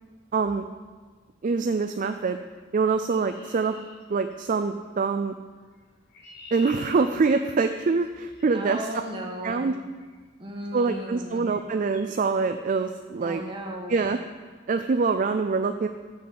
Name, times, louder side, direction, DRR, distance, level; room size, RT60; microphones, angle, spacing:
voice 1, 0.3-0.6 1.4-2.4 2.7-3.8 4.1-5.3 6.5-8.9 9.4-9.8 10.7-13.4 13.9-14.2 14.7-15.9, right 4 dB, 40° right, 7 dB, 0.4 m, -25 dB
Chirp tweet, 3.1-4.7 5.7-8.9 10.0-10.3 10.9-11.1 11.4-11.6 11.9-12.2, left 3 dB, 50° left, 1.3 m, -49 dB
voice 2, 8.5-9.6 10.4-11.5 13.2-14.0, right 1 dB, 25° right, 0 dB, 1.6 m, -35 dB
8.4 x 6.5 x 7.8 m, 1.4 s
head